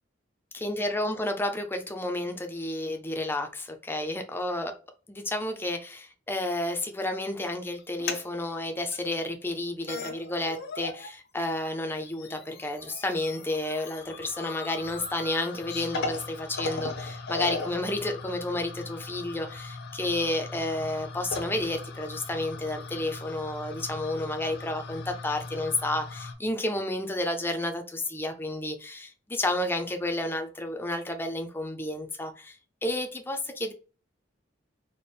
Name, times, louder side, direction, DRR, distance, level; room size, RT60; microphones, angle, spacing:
voice 1, 0.5-4.8 5.1-32.6 32.8-33.7, left 1 dB, 10° left, 0.4 m, -31 dB
sound 1, 7.8-8.2 8.9-9.0 9.6-9.7 9.9-11.1 11.4-26.3, left 4 dB, 55° left, 0.6 m, -38 dB
4.2 x 2.0 x 3.3 m
head